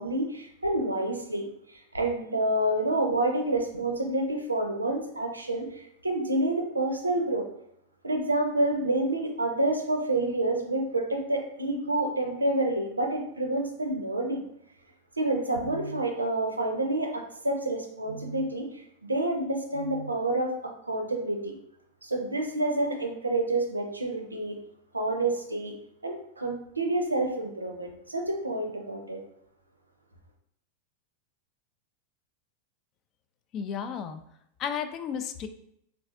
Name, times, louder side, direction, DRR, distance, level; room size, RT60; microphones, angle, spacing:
voice 1, 0.0-7.5 8.0-14.4 15.2-21.5 22.0-24.6 24.9-25.7 26.0-29.2, right 2 dB, 80° right, 4 dB, 0.5 m, -28 dB
voice 2, 33.5-34.2 34.6-35.5, left 7 dB, 35° left, 9 dB, 0.3 m, -33 dB
3.9 x 2.4 x 2.5 m, 0.76 s
figure-of-eight pair, 90°, 0 cm